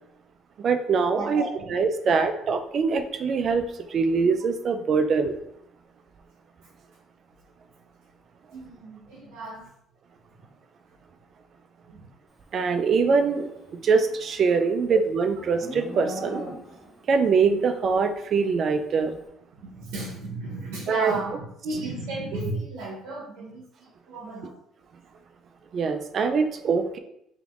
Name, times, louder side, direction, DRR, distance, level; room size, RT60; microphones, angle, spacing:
voice 1, 0.6-1.4 1.7-3.6 3.9-5.4 12.5-13.5 13.8-16.4 17.1-19.1 20.9-21.2 25.7-27.0, right 5 dB, 50° right, 7 dB, 0.4 m, -23 dB
voice 2, 1.1-1.7 2.0-2.2 8.5-9.7 11.9-12.1 19.6-24.5 26.2-26.3, right 2 dB, 80° right, -5 dB, 1.1 m, -34 dB
Livestock farm animals working animals, 13.8-17.0, equal, 5° left, 1.3 m, -39 dB
3.4 x 3.0 x 3.6 m, 0.76 s
cardioid pair, 90°, 0 cm